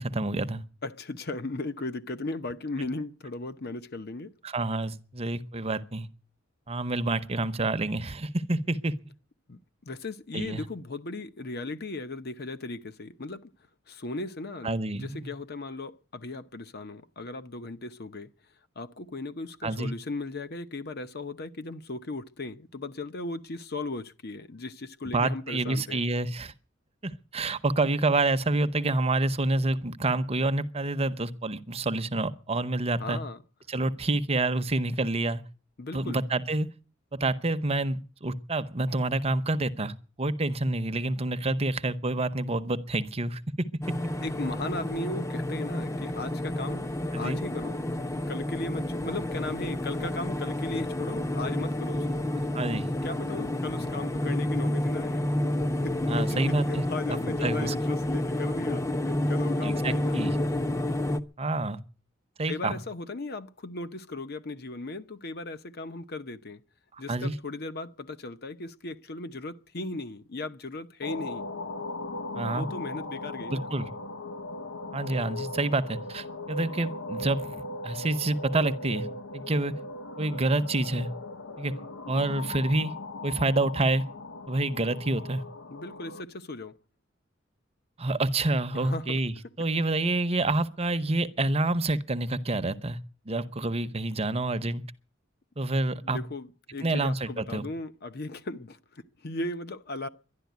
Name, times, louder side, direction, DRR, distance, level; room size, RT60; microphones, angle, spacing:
voice 1, 0.0-0.6 4.4-6.1 6.7-9.0 10.3-10.6 14.6-15.3 19.6-19.9 25.1-26.5 27.0-33.2 33.7-35.4 35.9-36.7 37.1-43.7 47.1-47.4 52.5-52.9 56.1-57.7 59.6-60.3 61.4-61.8 62.4-62.8 67.1-67.3 72.3-72.7 73.5-73.9 74.9-79.1 79.3-79.7 80.2-81.1 81.6-81.7 82.1-82.9 83.2-84.0 84.5-85.4 88.0-93.0 93.3-94.8 95.6-96.2 96.8-97.7, right 2 dB, 30° right, 0.8 m, -28 dB
voice 2, 0.8-4.3 9.5-13.5 13.9-18.3 18.8-26.0 33.0-33.4 35.8-36.2 44.2-47.8 48.3-52.3 53.0-55.2 55.7-60.2 62.5-66.6 67.0-71.5 72.5-73.7 85.7-86.7 88.7-89.2 96.0-100.1, left 2 dB, 55° left, 0.9 m, -37 dB
sound 1, 43.8-61.2, left 1 dB, 15° left, 0.7 m, -30 dB
sound 2, 71.0-86.2, left 2 dB, 90° left, 1.0 m, -38 dB
11.5 x 11.0 x 9.3 m
head